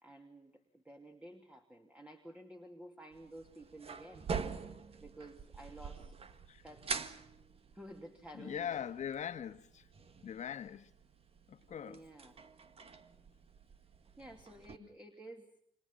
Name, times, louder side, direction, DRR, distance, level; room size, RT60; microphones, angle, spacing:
voice 1, 0.0-4.3 5.0-6.2 6.6-7.0 7.7-8.9 11.8-12.4 14.2-15.6, right 1 dB, 5° right, 2.7 m, -52 dB
sound 1, 3.1-14.8, right 5 dB, 35° right, 1.8 m, -46 dB
voice 2, 8.4-9.8 10.2-10.9 11.5-12.0, left 9 dB, 45° left, 1.9 m, -41 dB
29.5 x 26.5 x 5.7 m
cardioid pair, 110°, 17 cm